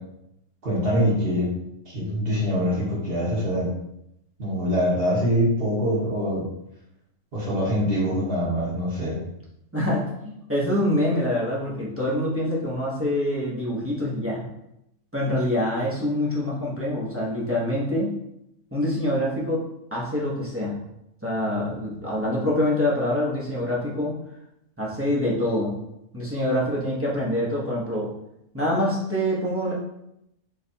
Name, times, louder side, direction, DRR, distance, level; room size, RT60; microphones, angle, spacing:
voice 1, 0.6-1.5 1.8-3.7 4.4-6.5 7.3-9.2, equal, 40° right, -6 dB, 1.3 m, -24 dB
voice 2, 9.7-14.4 15.1-18.1 18.7-19.6 19.9-20.8 21.2-24.2 24.8-25.7 26.1-28.1 28.5-29.7, left 1 dB, 15° right, -6 dB, 0.6 m, -25 dB
4.0 x 3.2 x 2.7 m, 0.82 s
omnidirectional pair, 1.6 m